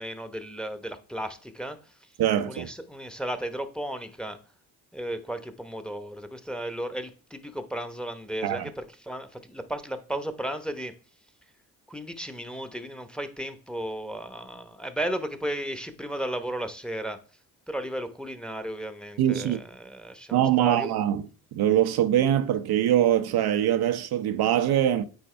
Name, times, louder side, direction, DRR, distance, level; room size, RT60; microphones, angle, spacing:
voice 1, 0.0-2.0 2.5-4.4 4.9-10.9 11.9-17.2 17.7-20.9, right 1 dB, ahead, 1.0 m, -34 dB
voice 2, 2.2-2.7 8.4-8.7 19.2-19.6 20.3-21.2 21.5-25.0, right 11 dB, 60° right, 0.7 m, -23 dB
8.9 x 4.1 x 3.3 m
hypercardioid pair, 50°, 42 cm